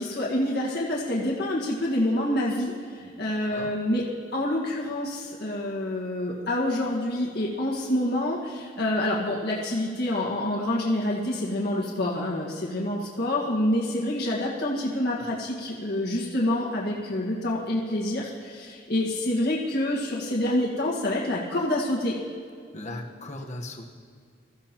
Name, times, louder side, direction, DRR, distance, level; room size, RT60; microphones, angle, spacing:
voice 1, 0.0-2.7 3.2-4.0 4.3-22.2, left 1 dB, 60° left, -5 dB, 1.8 m, -27 dB
voice 2, 3.0-3.7 22.7-23.9, left 1 dB, 40° left, 2 dB, 1.3 m, -38 dB
21.5 x 14.0 x 3.0 m, 2.3 s
head